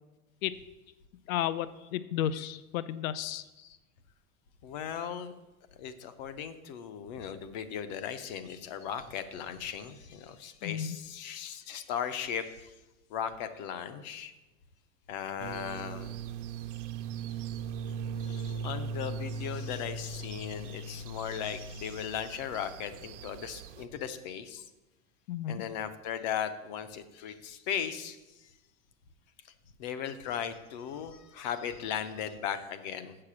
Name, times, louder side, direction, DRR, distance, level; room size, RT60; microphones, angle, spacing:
voice 1, 1.3-3.4 10.6-11.0 25.3-25.6, left 10 dB, 80° left, 15 dB, 0.6 m, -33 dB
voice 2, 4.6-5.3 5.8-12.7 13.1-14.3 15.1-16.2 18.2-24.7 25.5-28.5 29.8-33.2, left 8 dB, 35° left, 11 dB, 0.5 m, -37 dB
sound 1, 15.4-23.9, right 5 dB, 60° right, 0.9 m, -39 dB
7.6 x 6.7 x 7.3 m, 1.1 s
supercardioid pair, 175°, 41 cm